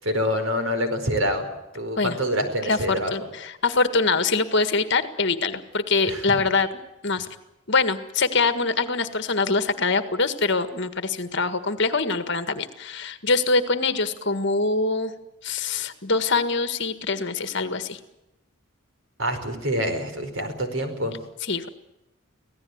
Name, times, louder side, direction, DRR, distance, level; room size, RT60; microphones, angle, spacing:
voice 1, 0.0-1.5 1.7-3.1 6.1-6.4 19.2-21.2, equal, 70° right, 7 dB, 4.9 m, -26 dB
voice 2, 2.7-6.7 7.0-7.3 7.7-15.1 15.4-18.0 21.4-21.7, left 3 dB, 55° left, 10 dB, 1.8 m, -24 dB
26.0 x 17.5 x 9.5 m, 0.95 s
head